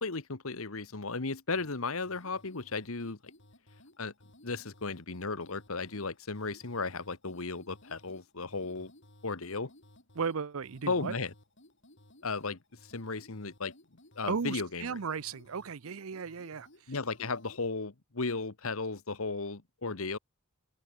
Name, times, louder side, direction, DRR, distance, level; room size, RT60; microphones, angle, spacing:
voice 1, 0.0-3.2 4.0-4.1 4.4-8.9 9.2-9.7 10.9-11.3 12.2-12.6 12.9-13.7 14.2-14.8 16.9-20.2, left 3 dB, 70° left, 1.5 m, -35 dB
sound 1, 1.5-17.7, left 1 dB, 55° left, 7.6 m, -59 dB
voice 2, 10.1-11.1 14.3-16.7, right 5 dB, 70° right, 0.6 m, -35 dB
open air
head